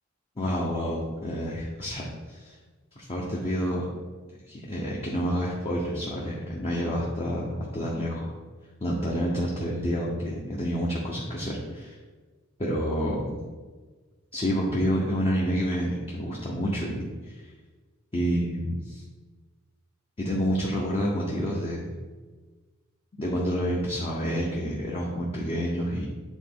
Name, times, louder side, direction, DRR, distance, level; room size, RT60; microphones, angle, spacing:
voice 1, 0.4-2.6 3.1-3.8 4.5-8.3 8.8-12.0 12.6-13.4 14.3-17.5 18.1-19.0 20.2-21.9 23.2-26.1, equal, 25° left, -4 dB, 0.8 m, -28 dB
8.3 x 3.7 x 3.7 m, 1.4 s
head